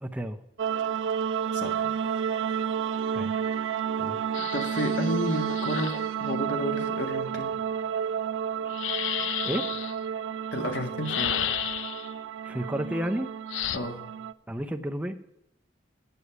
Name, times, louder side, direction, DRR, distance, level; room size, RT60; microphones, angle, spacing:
voice 1, 0.0-0.4 3.1-3.5 4.0-4.2 9.4-9.7 12.4-13.3 14.5-15.2, equal, 10° right, 6 dB, 0.5 m, -32 dB
sound 1, 0.6-14.3, right 7 dB, 80° right, 0.3 m, -31 dB
voice 2, 1.5-1.9 4.5-5.9 6.2-7.5 10.5-11.4 13.7-14.0, equal, 70° left, 3 dB, 1.4 m, -31 dB
sound 2, 4.3-6.1 8.7-9.9 11.0-12.1 13.5-13.8, left 10 dB, 90° left, 0.4 m, -32 dB
9.6 x 6.2 x 6.8 m, 0.80 s
head